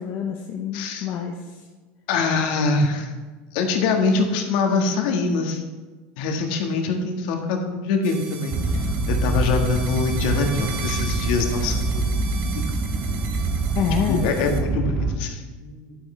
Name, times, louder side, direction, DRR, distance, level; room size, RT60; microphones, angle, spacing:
voice 1, 0.0-1.6 13.8-14.3, left 7 dB, 40° left, 1 dB, 0.8 m, -27 dB
voice 2, 0.7-1.1 2.1-3.1 3.5-5.6 6.2-8.8 9.1-12.3 12.5-13.2 14.1-16.0, left 4 dB, 65° left, 3 dB, 1.5 m, -24 dB
sound 1, 8.0-14.6, right 6 dB, 40° right, 1.2 m, -38 dB
sound 2, 8.5-15.2, right 2 dB, 20° right, 0.9 m, -25 dB
11.5 x 8.6 x 3.3 m, 1.3 s
supercardioid pair, 160°, 5 cm